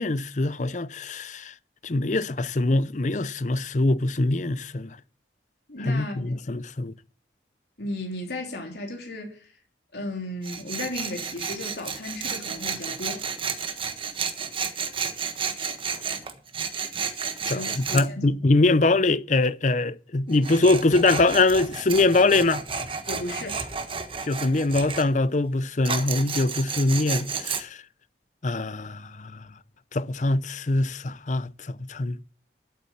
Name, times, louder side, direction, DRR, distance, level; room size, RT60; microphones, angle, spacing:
voice 1, 0.0-1.5 1.8-4.9 5.9-6.9 17.5-22.6 24.3-27.8 28.4-29.4 29.9-32.2, left 2 dB, 45° left, 0.6 m, -23 dB
voice 2, 5.7-6.2 7.8-9.5 9.9-13.2 17.5-18.3 23.1-23.6, left 1 dB, 70° left, 3.2 m, -35 dB
Tools, 10.4-18.1 20.3-25.1 25.8-27.6, right 6 dB, 30° right, 1.4 m, -32 dB
11.5 x 8.5 x 7.2 m
head